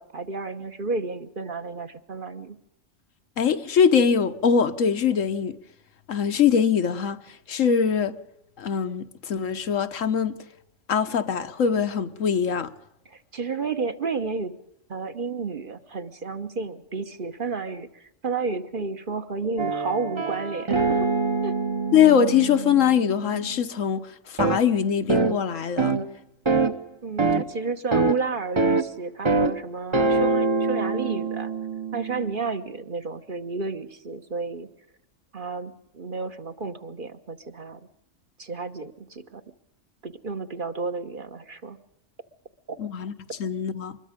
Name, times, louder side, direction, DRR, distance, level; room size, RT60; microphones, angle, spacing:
voice 1, 0.0-2.6 13.0-14.6 14.9-21.1 21.4-21.5 27.0-31.5 31.9-34.7 35.3-37.8 38.4-39.4 40.0-41.8 42.7-42.8, right 4 dB, 45° right, 1.3 m, -32 dB
voice 2, 3.4-5.6 6.1-7.2 7.5-8.2 8.6-10.4 10.9-12.7 21.9-26.0 42.8-43.1 43.4-44.0, left 7 dB, 85° left, 1.4 m, -22 dB
sound 1, 19.6-23.6 24.4-24.6 25.1-25.4 25.8-26.1 26.5-26.7 27.2-27.4 27.9-28.2 28.6-28.9 29.3-29.5 29.9-32.4, right 3 dB, 25° right, 0.9 m, -24 dB
25.0 x 21.5 x 5.1 m
omnidirectional pair, 1.3 m